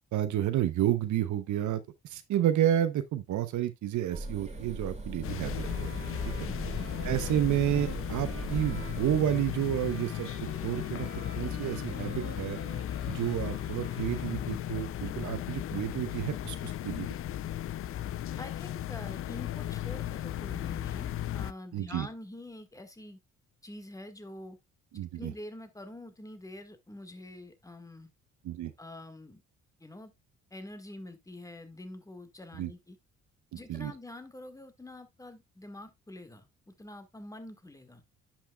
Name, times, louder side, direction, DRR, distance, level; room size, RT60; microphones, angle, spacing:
voice 1, 0.1-5.9 6.3-6.4 7.0-10.3 10.6-11.1 11.4-12.6 13.1-17.1 21.7-22.1 24.9-25.3 28.4-28.7 32.6-32.7 33.7-33.9, right 11 dB, 70° right, 0.8 m, -30 dB
sound 1, 4.1-9.2, right 2 dB, 25° right, 2.3 m, -39 dB
sound 2, 5.2-21.5, left 11 dB, 50° left, 0.4 m, -36 dB
sound 3, 5.5-14.7, right 6 dB, 45° right, 2.0 m, -49 dB
voice 2, 6.4-7.1 18.4-23.2 23.6-24.6 25.1-28.1 28.8-29.4 29.8-30.1 30.5-33.0 33.5-38.0, left 1 dB, 10° left, 1.6 m, -46 dB
10.5 x 6.0 x 2.3 m
cardioid pair, 90°, 30 cm